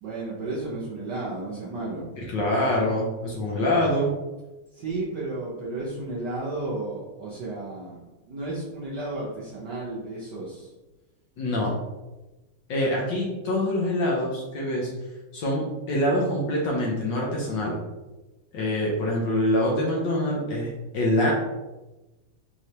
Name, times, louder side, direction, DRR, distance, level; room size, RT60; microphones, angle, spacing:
voice 1, 0.0-2.1 4.7-10.7, right 2 dB, 60° right, -6 dB, 1.3 m, -33 dB
voice 2, 2.2-4.1 11.4-11.7 12.7-14.9 15.3-17.8 18.5-21.3, left 1 dB, 65° left, -2 dB, 1.4 m, -25 dB
4.8 x 3.2 x 2.8 m, 1.1 s
omnidirectional pair, 2.4 m